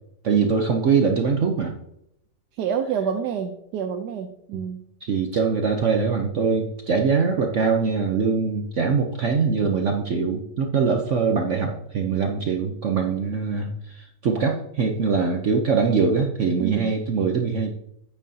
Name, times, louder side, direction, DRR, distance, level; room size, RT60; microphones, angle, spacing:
voice 1, 0.2-1.8 5.0-17.7, right 5 dB, 60° right, 4 dB, 0.8 m, -23 dB
voice 2, 2.6-4.8 16.6-16.9, right 7 dB, 75° right, 6 dB, 1.1 m, -28 dB
9.1 x 8.4 x 2.7 m, 0.80 s
omnidirectional pair, 1.9 m